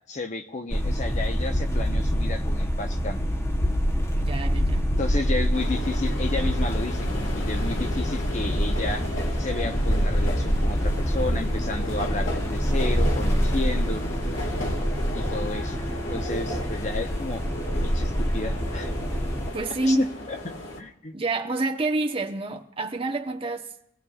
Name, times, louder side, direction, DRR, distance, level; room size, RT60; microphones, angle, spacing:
voice 1, 0.1-3.3 5.0-9.1 9.4-14.1 15.1-15.8 16.1-17.4 17.8-18.9 19.8-21.1, left 2 dB, 40° left, 1.0 m, -32 dB
sound 1, 0.7-19.5, equal, 15° left, 0.9 m, -26 dB
voice 2, 4.1-4.9 19.5-20.1 21.1-23.7, right 2 dB, 30° right, 1.0 m, -28 dB
sound 2, 5.5-20.8, left 1 dB, 80° left, 1.9 m, -35 dB
25.5 x 16.5 x 2.4 m
head